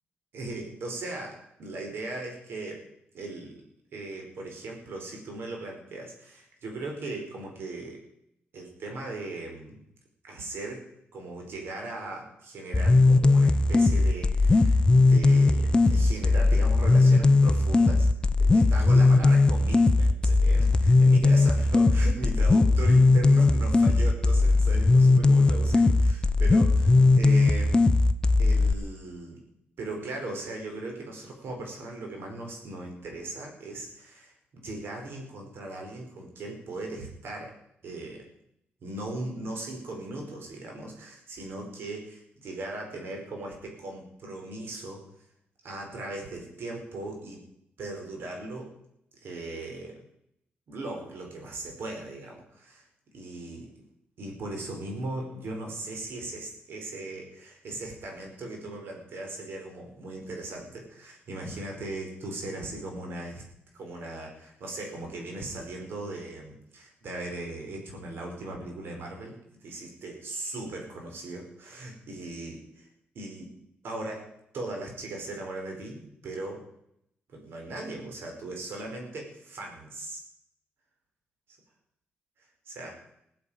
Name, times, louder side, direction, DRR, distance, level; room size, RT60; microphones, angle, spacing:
voice 1, 0.3-2.8 3.1-3.6 3.9-8.0 8.5-9.8 10.2-18.1 18.4-27.7 28.4-29.4 29.8-37.5 37.8-38.3 38.8-45.0 45.6-47.4 47.8-48.7 49.2-50.0 50.7-52.8 53.1-53.7 54.2-63.4 63.7-69.4 69.6-72.9 73.1-73.5 73.8-76.6 77.3-80.2 82.7-83.0, right 2 dB, 70° right, 1 dB, 5.1 m, -38 dB
sound 1, 12.7-28.7, left 3 dB, 20° left, 0.7 m, -19 dB
16.5 x 8.5 x 8.9 m, 0.75 s
cardioid pair, 105°, 4 cm